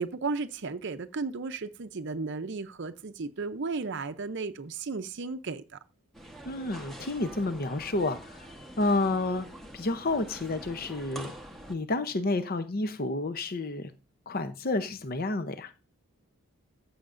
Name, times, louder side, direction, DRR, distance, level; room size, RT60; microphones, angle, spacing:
voice 1, 0.0-5.8, right 4 dB, 55° right, 0.6 m, -34 dB
sound 1, 6.1-11.8, right 1 dB, ahead, 1.1 m, -45 dB
voice 2, 6.4-9.5 9.7-11.3 11.7-13.9 14.3-15.7, left 2 dB, 40° left, 0.7 m, -30 dB
14.5 x 7.1 x 2.5 m
head